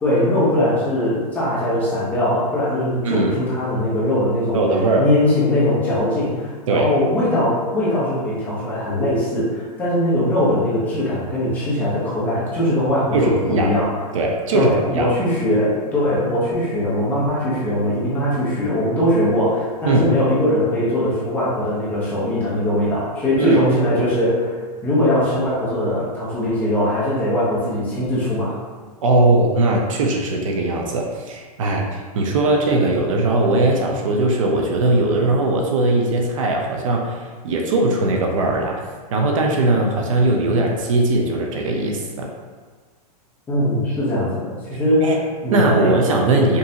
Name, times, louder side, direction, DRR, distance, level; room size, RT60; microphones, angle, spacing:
voice 1, 0.0-4.6 5.0-13.9 14.5-24.6 24.8-28.5 43.5-45.2 45.4-45.9 46.2-46.6, left 1 dB, 10° left, -9 dB, 0.7 m, -20 dB
voice 2, 4.5-5.1 6.7-6.9 13.1-13.7 14.1-15.1 19.8-20.1 23.3-23.6 29.0-38.8 39.1-42.3 45.0-45.2 45.5-46.6, right 2 dB, 55° right, 1 dB, 0.6 m, -19 dB
5.4 x 2.6 x 2.7 m, 1.5 s
supercardioid pair, 180°, 20 cm